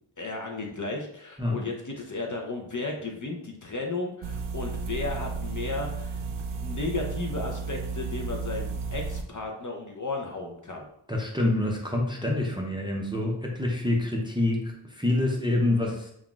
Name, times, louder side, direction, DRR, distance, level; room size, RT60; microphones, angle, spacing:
voice 1, 0.2-6.2 6.5-10.9, left 3 dB, 40° left, 1 dB, 0.6 m, -34 dB
sound 1, 4.2-9.2, right 4 dB, 75° right, 0.5 m, -33 dB
voice 2, 11.1-16.1, left 2 dB, 10° right, -1 dB, 0.5 m, -26 dB
5.6 x 2.4 x 2.3 m, 0.74 s
wide cardioid pair, 80°, 50 cm